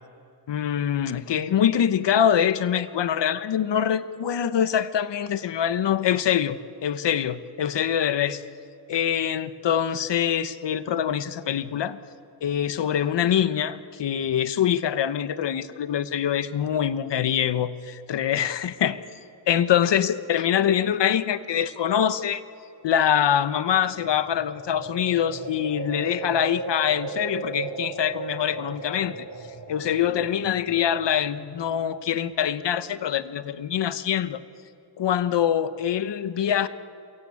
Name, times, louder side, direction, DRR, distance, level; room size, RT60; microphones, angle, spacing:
voice 1, 0.5-8.4 8.9-12.0 12.4-19.0 19.5-22.4 22.8-29.2 29.7-34.4 35.0-36.7, left 9 dB, 70° left, 13 dB, 1.2 m, -24 dB
sound 1, 23.8-31.9, right 4 dB, 70° right, 6.8 m, -37 dB
28.0 x 23.0 x 8.6 m, 2.5 s
cardioid pair, 95°, 44 cm